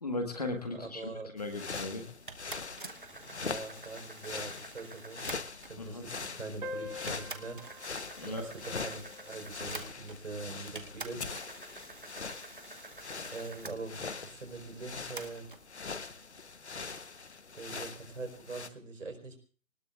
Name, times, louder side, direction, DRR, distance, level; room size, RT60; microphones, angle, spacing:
voice 1, 0.0-2.0 5.8-6.0 8.2-8.4, left 2 dB, 30° left, 5 dB, 1.6 m, -37 dB
voice 2, 0.7-1.3 3.2-5.2 5.6-7.6 8.2-11.2 13.3-15.5 17.5-19.4, right 3 dB, 60° right, 4 dB, 4.2 m, -43 dB
sound 1, 1.4-18.7, left 4 dB, 55° left, 1.0 m, -43 dB
sound 2, 2.3-5.8 6.6-6.7 7.1-10.4 10.8-13.8 15.2-15.6, right 3 dB, 40° right, 0.9 m, -47 dB
sound 3, 6.6-11.6, left 2 dB, 75° right, 3.0 m, -47 dB
24.5 x 19.0 x 2.4 m, 0.39 s
hypercardioid pair, 180°, 41 cm